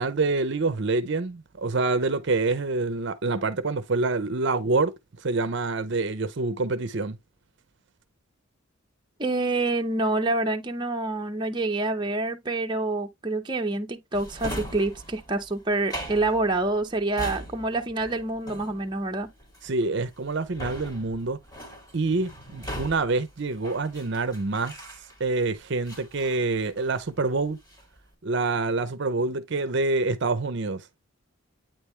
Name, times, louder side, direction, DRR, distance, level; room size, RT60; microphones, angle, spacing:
voice 1, 0.0-4.9 5.2-7.2 19.6-21.4 21.9-24.8 25.2-27.6 28.2-30.9, right 3 dB, 55° right, 0.6 m, -26 dB
voice 2, 9.2-19.3, right 2 dB, 20° right, 0.8 m, -27 dB
Drawer open or close, 14.1-25.4 25.8-27.1 27.5-28.0, equal, 20° left, 2.3 m, -40 dB
9.0 x 3.3 x 3.1 m
head